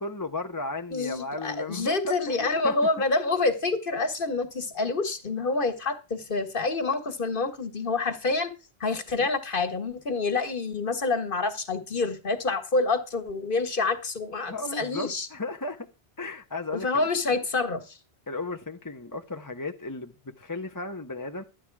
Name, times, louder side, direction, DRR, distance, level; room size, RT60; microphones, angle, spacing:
voice 1, 0.0-2.7 9.2-9.3 14.5-15.9 16.2-17.4 18.3-21.4, left 2 dB, 20° left, 0.7 m, -35 dB
voice 2, 0.9-8.5 8.8-15.3 16.7-18.0, left 3 dB, 50° left, 1.7 m, -27 dB
12.5 x 9.0 x 4.7 m
omnidirectional pair, 1.1 m